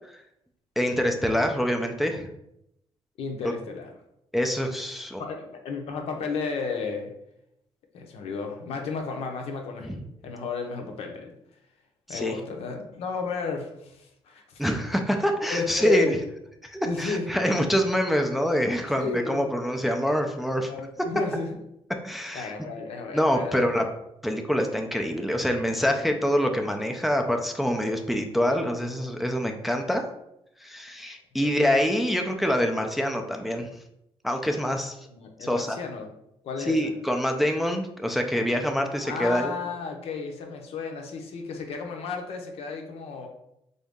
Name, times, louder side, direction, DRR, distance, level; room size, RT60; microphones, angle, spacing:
voice 1, 0.8-2.3 3.4-3.5 4.3-5.2 9.8-10.0 12.1-12.3 14.6-16.2 16.6-20.7 22.0-22.5 23.1-23.9 24.2-30.0 30.6-33.7 34.2-35.0 35.4-35.8 36.7-39.5, equal, ahead, 4 dB, 0.3 m, -25 dB
voice 2, 3.2-3.9 5.2-7.1 7.9-10.0 10.2-11.3 12.1-14.6 15.5-16.2 16.8-17.3 18.9-19.5 20.7-21.5 22.3-23.6 25.9-26.3 31.4-31.5 35.0-36.1 36.4-36.9 39.0-43.3, left 5 dB, 80° left, 3 dB, 0.7 m, -33 dB
3.9 x 2.6 x 3.5 m, 0.81 s
cardioid pair, 155°, 10 cm